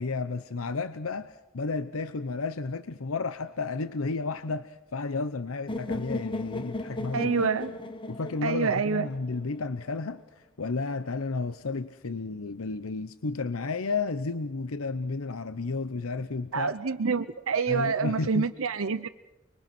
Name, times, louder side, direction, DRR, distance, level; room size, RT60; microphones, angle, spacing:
voice 1, 0.0-7.3 8.1-16.7 17.7-18.5, left 3 dB, 80° left, 12 dB, 0.8 m, -32 dB
sound 1, 5.7-9.6, left 2 dB, 25° left, 1.4 m, -36 dB
voice 2, 7.1-7.7 8.4-9.1 16.5-19.1, right 5 dB, 75° right, 9 dB, 0.8 m, -27 dB
29.5 x 22.0 x 6.1 m, 0.97 s
head